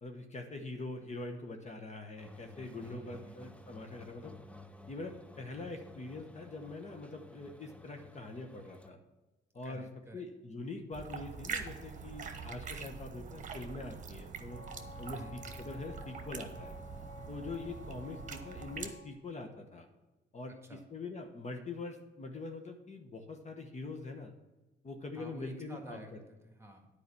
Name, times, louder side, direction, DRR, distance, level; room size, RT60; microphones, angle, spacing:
voice 1, 0.0-4.4 4.9-9.0 9.5-9.8 10.1-14.6 15.0-16.8 17.3-19.9 20.3-24.3 24.8-26.0, left 3 dB, 35° left, 4 dB, 1.1 m, -44 dB
sound 1, 2.2-8.9, left 2 dB, 5° left, 0.6 m, -54 dB
voice 2, 2.8-3.4 9.6-10.2 15.0-15.4 20.6-20.8 25.1-26.9, right 2 dB, 15° right, 3 dB, 1.7 m, -51 dB
sound 2, 10.9-18.9, right 5 dB, 40° right, 1.1 m, -44 dB
Wind instrument woodwind instrument, 14.5-19.1, left 2 dB, 70° left, 2.5 m, -52 dB
9.4 x 4.9 x 7.0 m, 1.1 s
cardioid pair, 90°, 20 cm